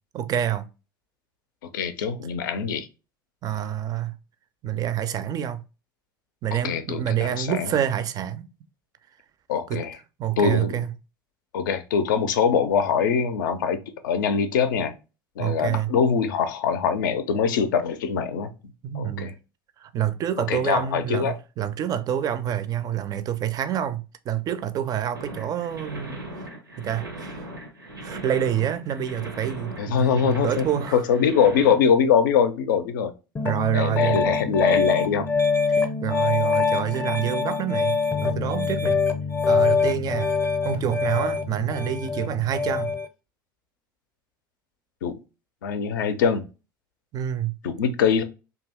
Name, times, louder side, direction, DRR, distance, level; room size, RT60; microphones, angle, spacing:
voice 1, 0.1-0.7 3.4-4.1 4.6-5.6 6.4-8.5 9.7-9.8 10.2-10.9 15.4-15.9 18.8-19.3 19.8-26.4 26.8-27.4 28.0-31.0 33.4-34.2 35.7-39.0 39.5-40.3 40.6-42.9 47.1-47.6, right 10 dB, 35° right, 0.4 m, -27 dB
voice 2, 1.7-2.9 6.5-7.7 9.5-9.9 10.4-10.8 11.5-13.8 14.0-14.9 15.4-18.5 18.9-19.3 20.5-21.4 29.8-30.7 30.9-33.1 33.7-35.3 45.0-45.1 45.6-46.5 47.6-48.2, left 6 dB, 65° left, 0.4 m, -23 dB
sound 1, 25.1-31.7, right 1 dB, 90° right, 0.6 m, -38 dB
Piano, 33.4-43.1, left 4 dB, 20° left, 0.5 m, -24 dB
2.7 x 2.3 x 3.3 m
figure-of-eight pair, 70°, 11 cm